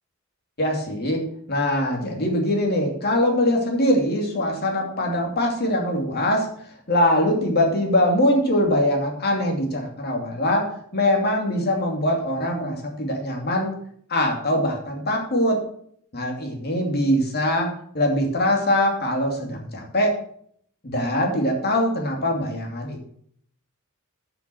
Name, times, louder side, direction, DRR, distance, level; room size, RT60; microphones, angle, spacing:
voice 1, 0.6-1.2 1.5-6.5 6.9-10.6 10.9-13.7 14.1-15.6 16.1-17.7 17.9-20.1 20.8-23.0, left 1 dB, 45° left, 1 dB, 2.7 m, -22 dB
10.0 x 6.1 x 6.3 m, 0.64 s
head